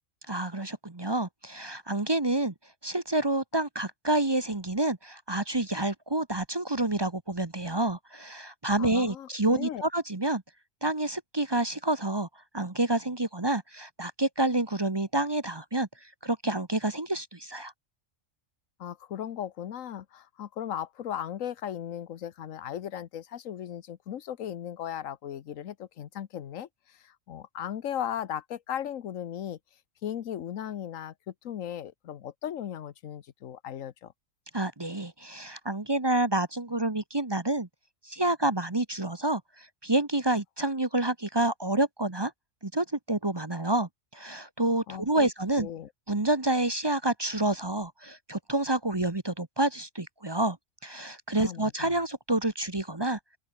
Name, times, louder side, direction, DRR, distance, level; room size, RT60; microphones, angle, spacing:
voice 1, 0.3-2.5 2.8-10.4 10.8-12.3 12.5-17.7 34.5-37.7 38.0-42.3 42.6-45.7 46.1-50.6 50.8-53.2, right 2 dB, 20° right, 1.1 m, -28 dB
voice 2, 8.8-9.8 18.8-29.6 30.0-34.1 44.9-45.3 45.6-45.9 51.4-51.9, left 10 dB, 90° left, 1.3 m, -37 dB
open air
omnidirectional pair, 1.3 m